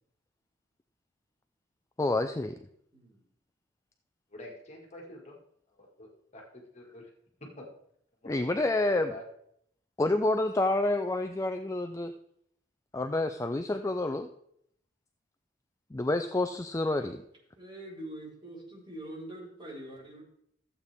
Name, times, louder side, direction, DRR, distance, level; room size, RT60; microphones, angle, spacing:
voice 1, 2.0-2.5 8.3-9.1 10.0-12.1 12.9-14.3 15.9-17.2, left 2 dB, 15° left, 7 dB, 0.4 m, -28 dB
voice 2, 2.9-3.2 17.6-20.2, right 1 dB, 25° right, -5 dB, 4.2 m, -44 dB
voice 3, 4.3-5.4 5.7-6.4 6.7-7.1 7.4-7.7 8.2-9.3, left 1 dB, 35° left, -1 dB, 2.0 m, -46 dB
14.0 x 8.2 x 3.5 m, 0.71 s
head